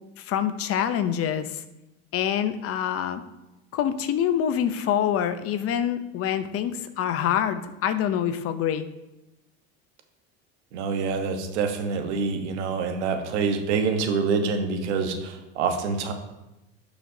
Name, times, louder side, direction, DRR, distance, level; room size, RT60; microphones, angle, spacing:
voice 1, 0.2-1.6 2.1-3.2 3.7-8.9, left 9 dB, 45° left, 11 dB, 0.7 m, -26 dB
voice 2, 10.7-16.1, right 5 dB, 90° right, 5 dB, 1.2 m, -26 dB
12.0 x 5.1 x 2.8 m, 0.95 s
supercardioid pair, 110°, 33 cm